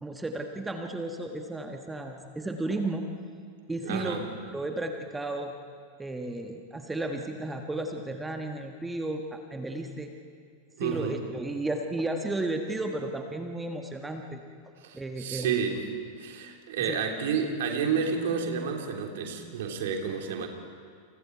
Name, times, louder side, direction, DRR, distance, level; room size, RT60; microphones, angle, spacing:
voice 1, 0.0-3.1 3.7-5.5 6.0-10.1 10.8-14.4 14.9-15.6 16.8-17.0, right 2 dB, 10° right, 4 dB, 1.5 m, -33 dB
voice 2, 3.8-4.2 10.8-11.2 14.8-15.8 16.2-20.5, right 6 dB, 55° right, 3 dB, 3.1 m, -30 dB
29.5 x 28.5 x 4.7 m, 2.1 s
figure-of-eight pair, 90°, 0 cm